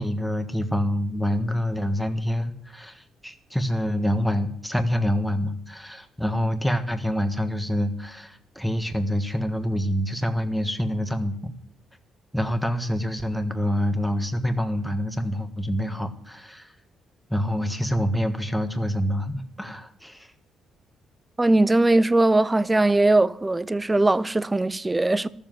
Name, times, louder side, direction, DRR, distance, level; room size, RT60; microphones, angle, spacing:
voice 1, 0.0-11.5 12.3-16.7 17.3-20.3, equal, ahead, 1.5 m, -26 dB
voice 2, 21.4-25.3, right 2 dB, 15° right, 0.6 m, -20 dB
13.5 x 7.3 x 9.3 m
cardioid pair, 90°, 0 cm